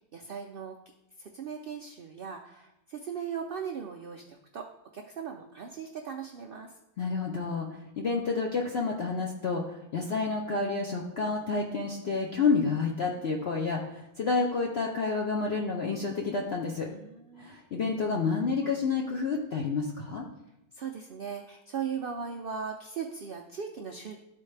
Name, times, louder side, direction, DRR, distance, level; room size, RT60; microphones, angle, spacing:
voice 1, 0.1-0.8 1.2-4.7 4.9-6.7 16.9-17.5 20.7-24.2, right 6 dB, 85° right, 2 dB, 0.4 m, -38 dB
voice 2, 7.0-16.9 17.4-20.3, left 4 dB, 55° left, 0 dB, 0.8 m, -29 dB
12.5 x 4.2 x 3.2 m, 0.87 s
omnidirectional pair, 1.6 m